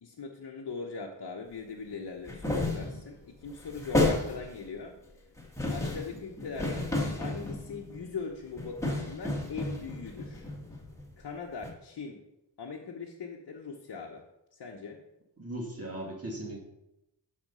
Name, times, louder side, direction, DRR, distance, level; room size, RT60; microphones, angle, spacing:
voice 1, 0.0-5.0 5.7-10.5 11.2-12.2 12.6-14.2 14.5-15.0, left 4 dB, 60° left, -1 dB, 1.0 m, -40 dB
sound 1, 2.2-3.1 3.4-4.7 5.4-8.0 8.6-11.3 11.6-11.7, left 2 dB, 5° left, 1.6 m, -32 dB
voice 2, 15.4-16.6, right 1 dB, 35° right, -2 dB, 1.9 m, -38 dB
12.0 x 4.3 x 5.5 m, 0.90 s
wide cardioid pair, 150°, 42 cm